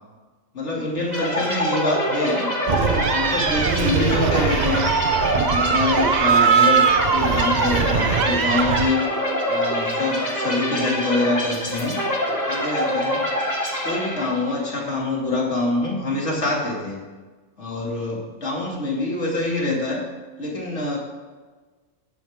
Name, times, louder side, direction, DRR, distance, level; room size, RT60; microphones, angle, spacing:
voice 1, 0.5-4.9 5.3-9.0 9.5-12.0 12.5-13.3 13.8-17.0 17.6-20.0 20.4-21.0, left 2 dB, 60° left, -2 dB, 3.1 m, -25 dB
sound 1, 1.1-14.7, equal, 15° left, 2.7 m, -25 dB
sound 2, 2.7-8.9, right 7 dB, 50° right, 0.5 m, -21 dB
17.5 x 11.5 x 3.7 m, 1.3 s
omnidirectional pair, 1.4 m